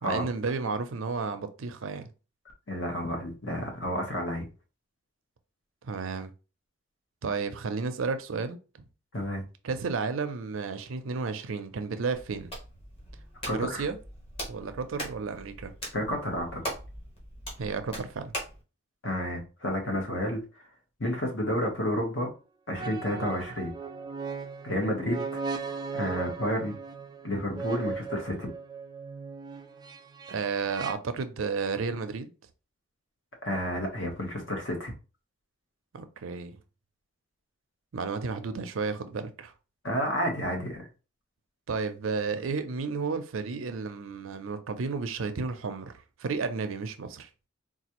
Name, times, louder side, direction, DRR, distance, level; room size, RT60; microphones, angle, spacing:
voice 1, 0.0-2.1 5.8-6.3 7.2-8.6 9.6-12.5 13.5-14.0 14.5-15.7 17.6-18.3 30.3-32.3 35.9-36.6 37.9-39.5 41.7-45.9 46.2-47.3, right 4 dB, 85° right, 0.5 m, -32 dB
voice 2, 2.7-4.5 9.1-9.4 13.5-13.8 15.9-16.6 19.0-20.4 21.0-22.3 22.7-23.7 24.6-25.4 25.9-26.7 27.2-28.5 33.4-34.9 39.8-40.9, equal, 65° left, 1.2 m, -30 dB
Hands, 12.1-18.6, equal, 30° left, 1.3 m, -41 dB
sound 1, 21.4-21.7 22.7-30.9, right 5 dB, 20° right, 0.3 m, -38 dB
4.0 x 2.4 x 2.9 m
head